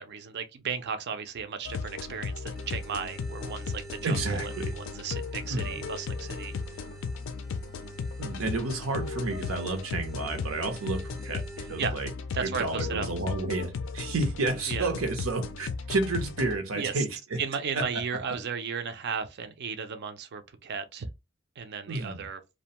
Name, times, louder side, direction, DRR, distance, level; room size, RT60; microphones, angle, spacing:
voice 1, 0.0-6.8 11.8-12.0 12.3-13.1 14.7-14.9 16.7-17.0 17.4-21.1 21.6-22.4, right 6 dB, 55° right, 0.4 m, -35 dB
sound 1, 1.6-16.6, left 4 dB, 65° left, 0.3 m, -36 dB
sound 2, 2.6-11.9, right 2 dB, ahead, 0.4 m, -48 dB
voice 2, 4.0-4.7 5.5-5.9 8.2-12.1 12.4-17.4 17.7-18.0 18.3-18.4 21.9-22.3, right 2 dB, 90° right, 0.7 m, -31 dB
2.5 x 2.2 x 2.8 m
head